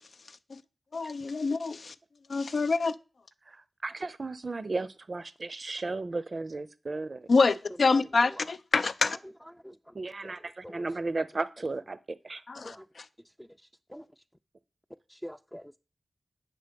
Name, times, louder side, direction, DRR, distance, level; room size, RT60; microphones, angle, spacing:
voice 1, 0.9-1.9 2.3-2.9 7.3-9.2 12.5-13.1, left 4 dB, 70° left, 0.6 m, -26 dB
voice 2, 3.5-7.3 9.9-12.0 12.2-12.4, right 3 dB, 55° right, 0.6 m, -34 dB
voice 3, 15.1-15.8, equal, 5° left, 0.4 m, -44 dB
9.1 x 6.2 x 5.2 m
cardioid pair, 60°, 0 cm